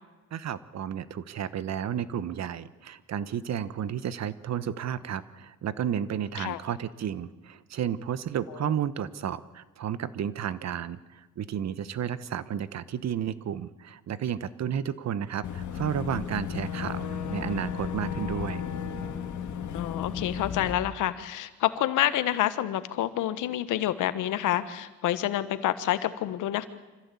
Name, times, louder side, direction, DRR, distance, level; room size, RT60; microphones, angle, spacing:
voice 1, 0.3-18.6, right 9 dB, 60° right, 16 dB, 1.2 m, -32 dB
Boat Water vehicle / Engine, 15.4-20.7, left 7 dB, 70° left, 2.4 m, -34 dB
voice 2, 19.7-26.7, left 13 dB, 85° left, 13 dB, 1.3 m, -28 dB
25.5 x 15.5 x 8.5 m, 1.2 s
cardioid pair, 90°, 30 cm